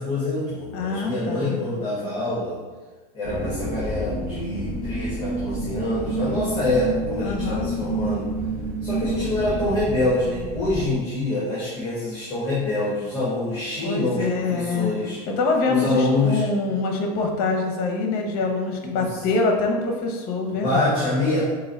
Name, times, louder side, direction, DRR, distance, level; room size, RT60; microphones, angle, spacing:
voice 1, 0.0-2.6 3.1-8.3 8.8-15.2 15.7-16.4 18.8-19.2 20.5-21.4, left 2 dB, 25° left, -7 dB, 1.4 m, -25 dB
voice 2, 0.7-1.6 7.2-7.7 13.8-14.9 15.3-20.9, left 3 dB, 50° left, 2 dB, 0.9 m, -25 dB
sound 1, 3.2-10.9, right 2 dB, 10° right, 1.1 m, -29 dB
4.6 x 2.6 x 4.2 m, 1.3 s
supercardioid pair, 135°, 19 cm